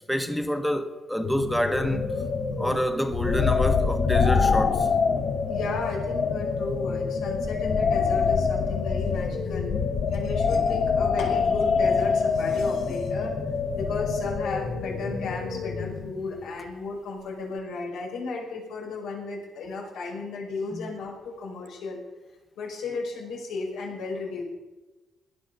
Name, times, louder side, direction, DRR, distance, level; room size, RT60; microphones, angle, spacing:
voice 1, 0.1-2.1 2.6-4.9 12.9-13.0 20.7-20.9, equal, ahead, 1.3 m, -27 dB
sound 1, 1.2-16.5, left 5 dB, 65° left, 1.7 m, -26 dB
voice 2, 5.5-9.7 10.1-13.3 13.7-22.0 22.6-24.4, left 3 dB, 90° left, 5.3 m, -34 dB
17.0 x 10.5 x 6.7 m
cardioid pair, 90°, 0 cm